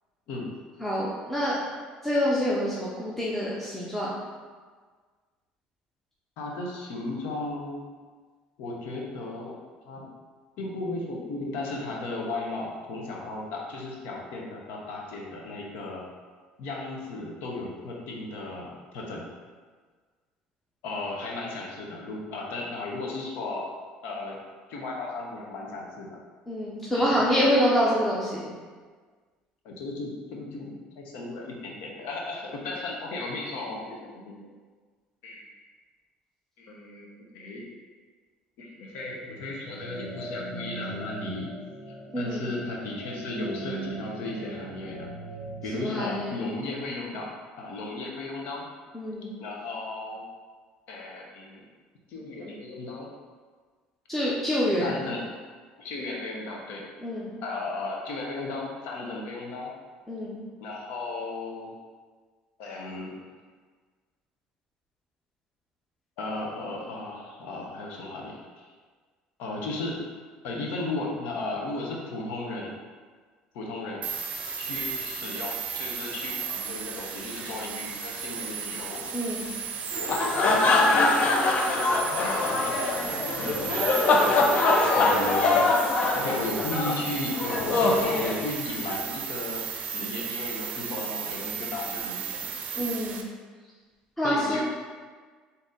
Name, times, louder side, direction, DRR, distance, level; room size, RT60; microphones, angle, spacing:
voice 1, 0.8-1.6 2.0-4.1 26.5-28.5 42.1-42.5 45.8-46.3 48.9-49.3 54.1-55.0 57.0-57.3 60.1-60.4 79.1-79.5 92.8-93.3 94.2-94.6, equal, 5° left, -7 dB, 0.7 m, -26 dB
voice 2, 6.4-7.9 8.6-9.6 9.9-10.1 10.6-16.1 16.6-19.3 20.8-23.7 24.0-24.4 24.7-26.2 26.9-28.1 29.6-30.7 31.0-34.5 35.2-35.5 36.6-37.6 38.6-41.6 41.9-45.1 45.6-48.7 49.4-50.2 50.9-51.6 52.1-53.1 54.8-55.4 55.8-56.8 57.4-59.7 60.6-61.8 62.6-63.3 66.2-68.7 69.4-70.1 70.4-72.8 73.5-74.1 74.6-79.0 80.0-81.1 82.2-82.8 83.4-84.0 84.9-92.5 94.2-94.6, left 2 dB, 70° left, -1 dB, 0.8 m, -35 dB
sound 1, 39.8-45.7, right 2 dB, 90° left, 1.4 m, -39 dB
sound 2, 74.0-93.2, right 6 dB, 50° right, 0.5 m, -35 dB
small group, 79.9-89.0, left 3 dB, 45° left, 0.6 m, -23 dB
3.9 x 2.8 x 3.7 m, 1.5 s
supercardioid pair, 90°, 3 cm